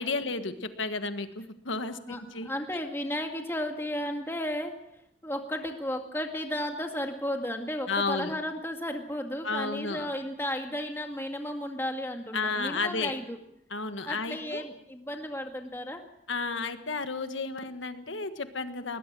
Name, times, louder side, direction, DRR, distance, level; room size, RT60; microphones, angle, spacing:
voice 1, 0.0-2.0 2.3-2.5 7.9-8.3 9.4-10.1 12.3-13.1 13.7-14.6 16.3-19.0, left 3 dB, 85° left, 8 dB, 1.6 m, -32 dB
voice 2, 2.1-4.7 5.2-13.4 14.1-16.0, left 1 dB, 15° left, 3 dB, 2.0 m, -34 dB
21.0 x 20.0 x 6.2 m, 0.77 s
head